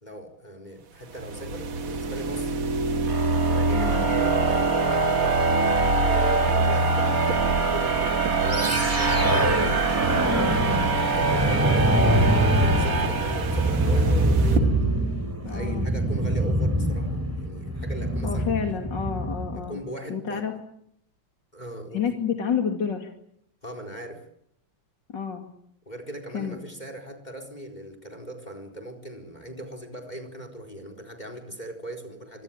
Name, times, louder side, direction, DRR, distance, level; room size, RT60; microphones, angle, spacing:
voice 1, 0.0-2.6 3.4-5.1 6.0-14.8 15.4-18.8 19.5-20.5 21.5-22.1 23.6-24.2 25.9-32.4, right 1 dB, 20° left, 8 dB, 4.4 m, -39 dB
sound 1, 0.8-14.6, right 5 dB, 80° right, 2.6 m, -38 dB
sound 2, 1.2-14.1, right 3 dB, 45° right, 2.7 m, -24 dB
voice 2, 3.7-4.1 15.4-15.9 18.2-19.8 20.1-20.5 21.9-23.1 25.1-25.5 26.3-26.6, left 7 dB, 65° left, 4 dB, 3.2 m, -29 dB
sound 3, 8.5-19.6, right 1 dB, 5° right, 3.6 m, -24 dB
26.0 x 25.0 x 8.9 m, 0.72 s
omnidirectional pair, 2.1 m